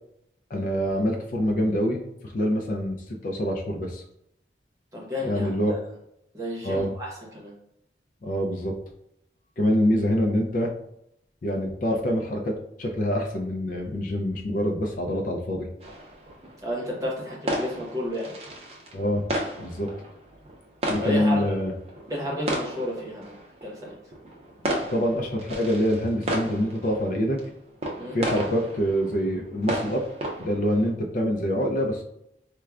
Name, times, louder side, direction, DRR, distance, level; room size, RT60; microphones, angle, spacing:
voice 1, 0.5-4.0 5.2-5.7 6.6-6.9 8.2-8.7 9.6-10.7 11.4-15.7 18.9-19.2 19.6-19.9 20.9-21.7 24.9-27.4 28.1-30.0 30.4-32.0, equal, 50° left, 2 dB, 0.4 m, -25 dB
voice 2, 4.9-5.8 6.3-7.5 16.6-18.3 21.0-21.5 22.1-23.4 23.6-24.0 28.0-28.2, left 1 dB, 20° right, -3 dB, 0.9 m, -31 dB
sound 1, 15.8-30.9, right 1 dB, 35° right, 0.5 m, -34 dB
4.4 x 2.1 x 2.4 m, 0.78 s
head